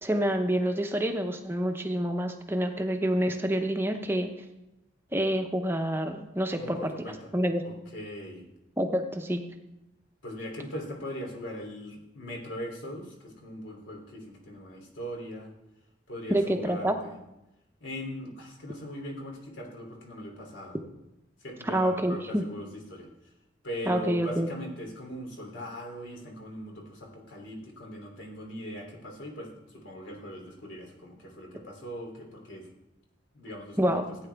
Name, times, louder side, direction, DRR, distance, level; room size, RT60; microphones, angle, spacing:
voice 1, 0.0-4.3 5.1-6.9 7.3-7.6 8.8-9.4 16.3-17.0 21.7-22.4 23.9-24.5 33.8-34.1, right 1 dB, 10° right, 5 dB, 0.7 m, -27 dB
voice 2, 6.6-7.3 7.6-8.4 10.2-15.5 16.1-17.2 17.8-20.8 21.4-23.3 23.6-32.7 33.3-33.9, equal, 80° left, 0 dB, 3.0 m, -40 dB
15.5 x 9.1 x 3.4 m, 0.93 s
head